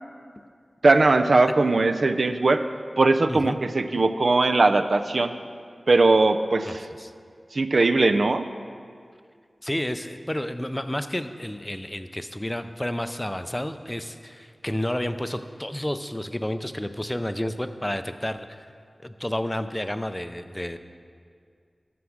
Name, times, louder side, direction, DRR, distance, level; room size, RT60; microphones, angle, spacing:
voice 1, 0.8-2.6 3.0-5.3 5.9-6.9 7.5-8.5, right 3 dB, 70° right, 9 dB, 0.4 m, -20 dB
voice 2, 6.7-7.1 9.6-18.5 19.0-20.8, left 1 dB, 15° left, 10 dB, 0.4 m, -30 dB
9.6 x 6.0 x 7.2 m, 2.2 s
wide cardioid pair, 85°, 0 cm